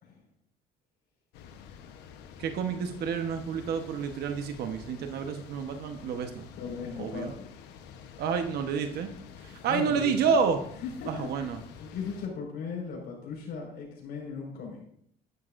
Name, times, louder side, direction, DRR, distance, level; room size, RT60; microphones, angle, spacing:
sound 1, 1.3-12.3, left 7 dB, 90° left, 1.0 m, -48 dB
voice 1, 2.4-6.5 7.0-7.3 8.2-9.1 9.4-10.6 11.1-11.6, right 6 dB, 70° right, 6 dB, 1.1 m, -29 dB
voice 2, 6.6-7.5 9.7-10.2 10.8-11.5 11.8-14.8, left 5 dB, 70° left, -1 dB, 5.0 m, -37 dB
12.0 x 11.5 x 2.6 m, 0.69 s
cardioid pair, 110°, 17 cm